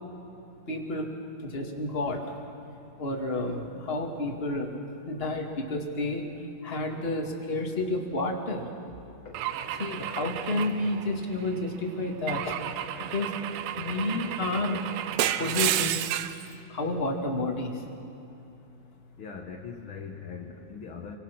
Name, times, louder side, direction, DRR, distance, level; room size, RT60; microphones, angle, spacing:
voice 1, 0.7-1.2 1.4-2.2 3.0-4.7 5.1-6.2 6.6-8.6 9.8-12.6 13.1-13.3 13.8-14.8 15.4-16.0 16.7-17.7, left 2 dB, 25° left, 1 dB, 1.5 m, -30 dB
Car / Engine / Glass, 9.3-11.6 12.3-16.4, right 11 dB, 80° right, 2.4 m, -31 dB
voice 2, 19.2-21.2, left 6 dB, 85° left, 1 dB, 1.1 m, -41 dB
26.5 x 25.0 x 6.1 m, 2.9 s
omnidirectional pair, 4.6 m